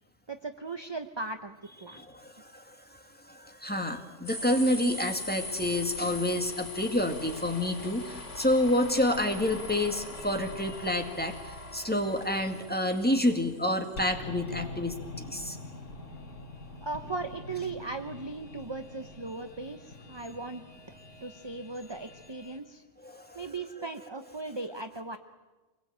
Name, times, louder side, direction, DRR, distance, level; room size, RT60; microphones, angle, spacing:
voice 1, 0.3-2.1 16.8-20.6 21.2-22.8 23.3-25.2, right 3 dB, 25° right, 7 dB, 0.6 m, -38 dB
voice 2, 1.9-15.6 23.0-23.4, left 1 dB, 5° left, 4 dB, 1.9 m, -29 dB
sound 1, 4.3-22.6, left 2 dB, 70° left, 4.0 m, -42 dB
26.0 x 20.5 x 8.9 m, 1.2 s
omnidirectional pair, 1.6 m